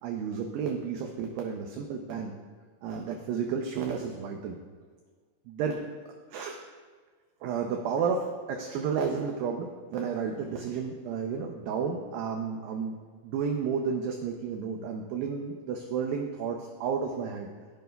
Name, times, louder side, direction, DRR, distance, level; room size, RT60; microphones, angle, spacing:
voice 1, 0.0-2.4 2.8-4.6 5.5-5.9 6.3-6.6 7.4-12.9 13.2-17.5, right 6 dB, 90° right, 2 dB, 2.0 m, -32 dB
15.0 x 5.2 x 2.2 m, 1.5 s
omnidirectional pair, 4.8 m